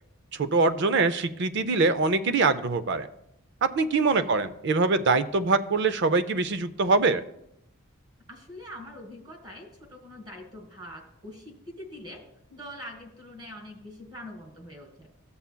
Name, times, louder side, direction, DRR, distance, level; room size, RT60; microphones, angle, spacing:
voice 1, 0.4-3.1 3.6-7.2, right 3 dB, 55° right, 12 dB, 0.5 m, -23 dB
voice 2, 8.3-12.2 12.5-15.1, left 1 dB, 20° right, 2 dB, 1.6 m, -44 dB
14.5 x 6.9 x 2.2 m, 0.79 s
head